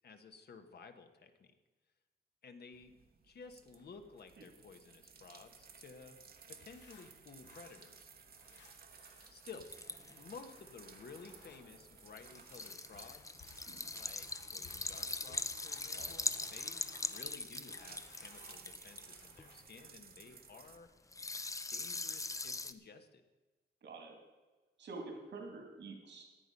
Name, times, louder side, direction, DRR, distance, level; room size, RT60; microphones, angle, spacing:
voice 1, 0.0-1.5 2.4-2.9 3.2-6.2 6.5-8.1 9.1-9.7 10.1-13.4 13.9-20.9 21.7-23.2, left 5 dB, 60° left, 7 dB, 1.2 m, -54 dB
sound 1, 2.7-20.8, right 6 dB, 55° right, 1.0 m, -57 dB
sound 2, 6.0-19.8, left 3 dB, 85° left, 3.1 m, -62 dB
sound 3, 9.5-10.1 12.2-19.4 21.1-22.7, left 3 dB, 15° left, 0.5 m, -41 dB
voice 2, 23.8-24.2 24.8-26.2, right 3 dB, 75° right, 2 dB, 2.4 m, -47 dB
14.0 x 9.8 x 5.3 m, 1.2 s
wide cardioid pair, 140°, 18 cm